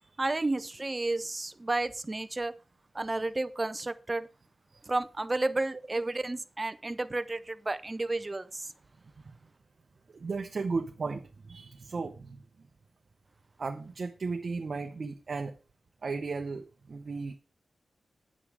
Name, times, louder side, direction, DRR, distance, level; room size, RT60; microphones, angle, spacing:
voice 1, 0.2-2.5 2.9-4.3 4.9-8.7, right 2 dB, 25° right, 0.6 m, -32 dB
voice 2, 10.1-12.4 13.6-15.6 16.0-17.4, right 4 dB, 50° right, 0.8 m, -36 dB
9.3 x 7.3 x 4.8 m
wide cardioid pair, 125°, 0 cm